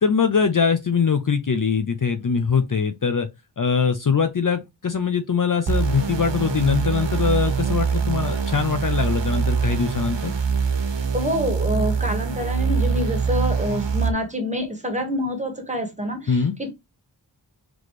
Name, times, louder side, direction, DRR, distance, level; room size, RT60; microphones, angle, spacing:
voice 1, 0.0-3.3 3.6-10.3 16.3-16.5, left 6 dB, 45° left, 0.6 m, -22 dB
sound 1, 5.7-14.1, right 6 dB, 75° right, 1.0 m, -24 dB
voice 2, 11.1-16.7, left 1 dB, 15° right, 1.6 m, -27 dB
4.1 x 3.1 x 3.1 m
wide cardioid pair, 60°, 44 cm